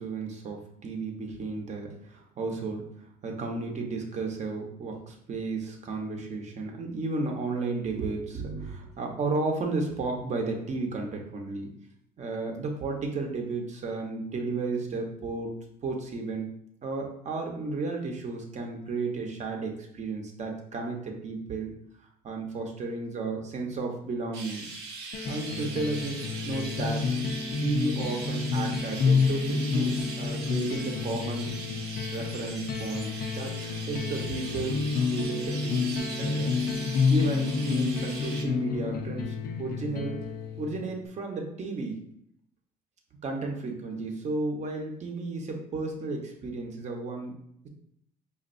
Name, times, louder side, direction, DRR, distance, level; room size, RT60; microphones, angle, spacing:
voice 1, 0.0-2.9 3.2-11.7 12.2-15.5 15.8-16.5 16.8-21.7 22.2-24.7 25.3-27.1 27.6-31.5 32.1-36.5 37.1-40.2 40.6-42.0 43.2-47.3, right 3 dB, 45° right, 2 dB, 0.8 m, -33 dB
Chirp tweet, 24.3-38.4, right 3 dB, 80° right, 0.9 m, -40 dB
sound 1, 25.1-41.1, left 5 dB, 60° left, 0.5 m, -29 dB
5.2 x 2.5 x 2.5 m, 0.70 s
cardioid pair, 110°, 17 cm